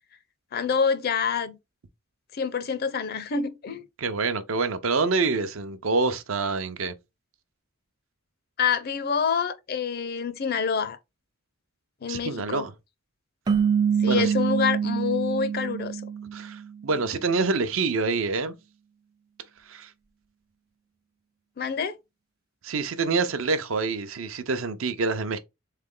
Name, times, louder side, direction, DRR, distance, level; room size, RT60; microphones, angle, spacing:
voice 1, 0.5-1.6 2.3-3.9 8.6-11.0 12.0-12.7 14.0-16.0 21.6-21.9, left 6 dB, 45° left, 0.5 m, -27 dB
voice 2, 4.0-6.9 12.1-12.7 14.1-14.3 16.3-18.6 19.7-19.9 22.6-25.4, right 4 dB, 70° right, 0.6 m, -26 dB
sound 1, 13.5-16.8, right 7 dB, 20° right, 0.3 m, -25 dB
3.8 x 3.3 x 3.7 m
head